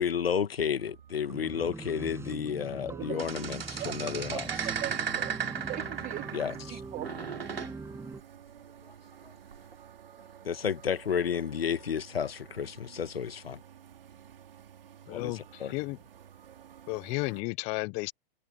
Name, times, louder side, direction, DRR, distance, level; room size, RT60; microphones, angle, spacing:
voice 1, 0.0-4.7 6.3-6.8 9.2-9.3 10.4-13.6 15.1-15.7, left 7 dB, 85° left, 1.6 m, -32 dB
sound 1, 0.6-17.4, right 9 dB, 75° right, 4.0 m, -53 dB
sound 2, 1.3-8.2, right 3 dB, 10° right, 6.1 m, -42 dB
voice 2, 2.9-3.2 3.8-5.3 5.7-6.2 6.7-7.1, right 16 dB, 25° right, 1.1 m, -40 dB
sound 3, 3.2-6.7 7.0-7.7 9.5-9.7, right 7 dB, 90° right, 2.9 m, -35 dB
voice 3, 15.1-16.0 16.9-18.1, left 26 dB, 20° left, 0.3 m, -33 dB
hypercardioid pair, 120°, 29 cm